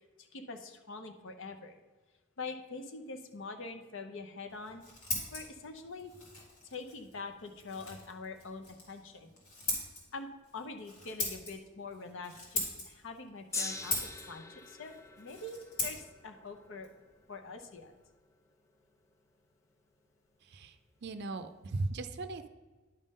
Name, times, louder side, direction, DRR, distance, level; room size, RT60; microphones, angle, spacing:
voice 1, 0.2-1.8 2.4-4.8 5.3-6.1 6.6-9.3 10.1-14.0 14.3-16.9 17.3-17.9, left 3 dB, 60° left, 7 dB, 0.7 m, -44 dB
Scissors, 4.5-18.1, left 2 dB, 90° left, 2.4 m, -42 dB
Gong, 13.5-19.9 20.7-20.8, left 3 dB, 15° left, 0.4 m, -45 dB
voice 2, 20.4-22.5, right 2 dB, 55° right, 9 dB, 0.5 m, -38 dB
10.5 x 3.7 x 5.4 m, 1.3 s
head